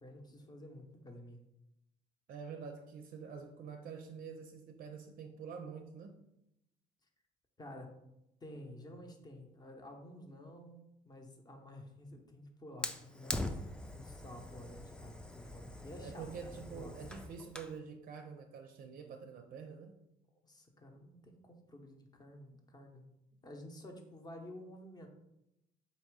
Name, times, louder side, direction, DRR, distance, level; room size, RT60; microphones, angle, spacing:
voice 1, 0.0-1.4 7.6-7.9 8.4-13.6 13.9-16.9 20.4-23.0 23.4-25.1, left 1 dB, 25° left, 0.8 m, -51 dB
voice 2, 2.3-6.2 16.0-20.0, right 6 dB, 55° right, 0.5 m, -47 dB
Fire, 12.8-17.8, left 1 dB, 5° left, 0.4 m, -43 dB
4.0 x 2.7 x 4.7 m
cardioid pair, 110°, 17 cm